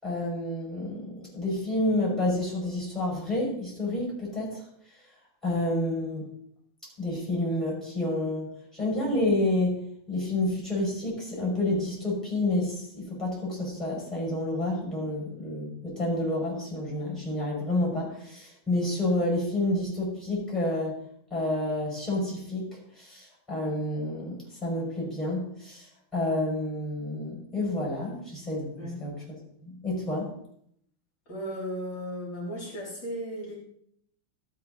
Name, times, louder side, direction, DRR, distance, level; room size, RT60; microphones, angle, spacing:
voice 1, 0.0-4.6 5.4-6.3 7.0-21.0 21.3-29.2 29.6-30.3, left 1 dB, ahead, -3 dB, 5.6 m, -29 dB
voice 2, 31.3-33.6, equal, 60° left, -5 dB, 4.0 m, -35 dB
13.5 x 8.4 x 4.0 m, 0.69 s
omnidirectional pair, 2.3 m